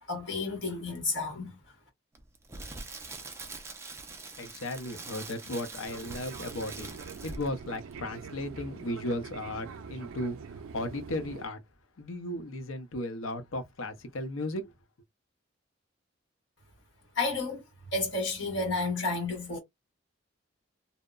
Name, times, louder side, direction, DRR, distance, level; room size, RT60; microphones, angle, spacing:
voice 1, 0.0-1.5 17.1-17.6 17.9-19.6, left 3 dB, 60° left, 1.3 m, -31 dB
Crackle, 2.1-7.6 7.9-8.1, right 3 dB, 15° right, 0.4 m, -44 dB
voice 2, 4.4-6.9 7.2-11.6 12.0-14.7, left 1 dB, 75° left, 0.6 m, -35 dB
Fixed-wing aircraft airplane, 5.8-11.5, right 5 dB, 85° right, 0.4 m, -44 dB
2.7 x 2.0 x 2.3 m
head